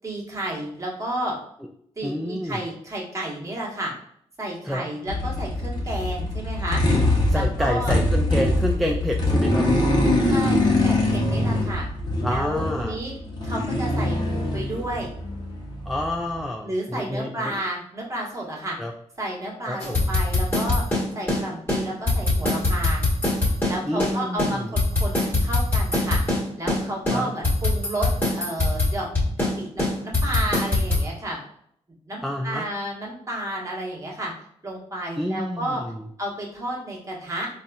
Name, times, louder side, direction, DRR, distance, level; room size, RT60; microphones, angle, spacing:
voice 1, 0.0-1.3 2.0-3.9 4.4-6.8 7.3-7.9 10.3-11.9 12.3-13.2 13.4-15.1 16.6-18.8 19.2-20.8 21.1-23.0 23.6-26.2 26.6-28.1 28.3-29.1 29.4-31.4 32.1-34.3 34.6-35.8 36.2-37.5, right 1 dB, 25° right, -3 dB, 1.2 m, -31 dB
voice 2, 2.0-2.6 4.6-4.8 7.3-9.6 12.2-13.0 15.9-17.6 18.8-18.9 19.7-20.0 23.9-24.7 27.1-27.3 32.2-32.7 35.2-36.0, left 1 dB, ahead, 1 dB, 0.3 m, -28 dB
sound 1, 5.1-16.5, left 1 dB, 40° left, 0.9 m, -23 dB
sound 2, 19.8-21.4 21.7-21.8 22.1-24.1 24.4-26.4 26.7-26.8 27.1-29.5 29.8-31.0, left 2 dB, 20° left, 1.4 m, -22 dB
4.0 x 2.5 x 2.3 m, 0.68 s
cardioid pair, 75°, 12 cm